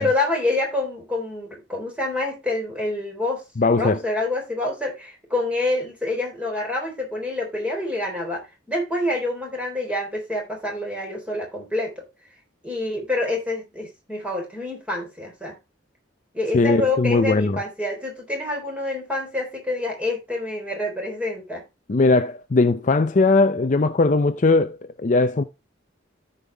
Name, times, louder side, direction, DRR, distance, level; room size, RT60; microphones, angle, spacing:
voice 1, 0.0-3.4 3.8-8.4 8.7-12.0 12.6-15.5 16.3-21.6, left 2 dB, 5° right, 3.9 m, -27 dB
voice 2, 3.6-4.0 16.5-17.6 21.9-25.4, left 3 dB, 40° left, 0.5 m, -19 dB
14.0 x 5.4 x 3.4 m
head